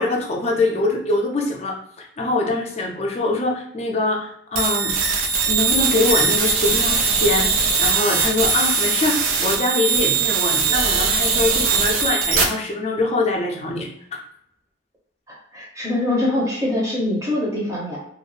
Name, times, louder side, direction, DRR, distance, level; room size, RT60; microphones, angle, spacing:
voice 1, 0.0-4.9 5.5-13.9, left 2 dB, 30° left, 0 dB, 0.4 m, -23 dB
sound 1, 4.6-12.4, right 5 dB, 85° right, 0.4 m, -20 dB
voice 2, 15.3-18.0, left 1 dB, 15° right, -5 dB, 0.7 m, -23 dB
2.4 x 2.0 x 3.2 m, 0.71 s
head